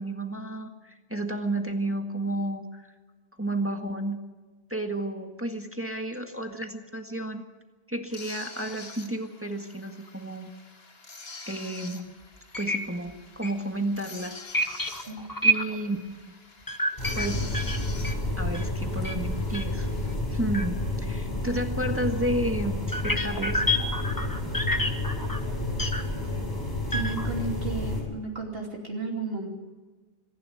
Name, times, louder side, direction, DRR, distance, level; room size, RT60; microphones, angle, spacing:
voice 1, 0.0-2.9 3.4-4.2 4.7-7.4 7.9-10.5 11.5-12.1 12.5-14.3 14.9-15.0 15.4-16.0 17.1-17.6 18.4-19.9 20.3-23.6, right 1 dB, 15° right, 4 dB, 1.7 m, -31 dB
sound 1, 8.1-20.1, left 3 dB, 75° left, 2.2 m, -46 dB
sound 2, 12.0-12.1 12.5-12.8 13.1-13.2 13.4-13.5 14.5-15.9 16.7-18.7 19.0-19.2 19.5-19.6 20.0-20.1 20.5-20.6 21.5-21.6 22.9-26.0 26.9-27.5 27.8-28.1, equal, 20° left, 1.5 m, -28 dB
sound 3, 17.0-28.0, left 1 dB, 50° left, 7.5 m, -30 dB
voice 2, 26.9-29.5, right 3 dB, 70° right, 0 dB, 3.2 m, -33 dB
26.0 x 11.5 x 9.8 m, 1.3 s
omnidirectional pair, 1.0 m